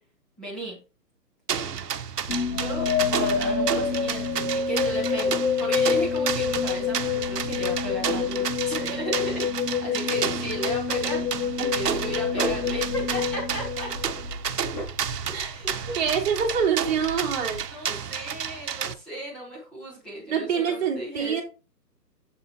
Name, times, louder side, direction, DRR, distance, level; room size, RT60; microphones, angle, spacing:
voice 1, 0.4-0.8 2.5-13.9 15.2-16.0 17.7-21.4, right 1 dB, ahead, -5 dB, 0.9 m, -35 dB
sound 1, 1.5-18.9, right 7 dB, 70° right, 1.1 m, -31 dB
sound 2, 2.3-14.3, left 6 dB, 75° left, 1.5 m, -27 dB
voice 2, 11.6-12.1 15.3-15.5 15.9-17.6 20.3-21.4, right 7 dB, 25° right, -2 dB, 2.9 m, -26 dB
Dog, 11.8-17.7, left 1 dB, 25° left, 3.0 m, -38 dB
7.9 x 7.2 x 2.9 m, 0.33 s
hypercardioid pair, 165°, 49 cm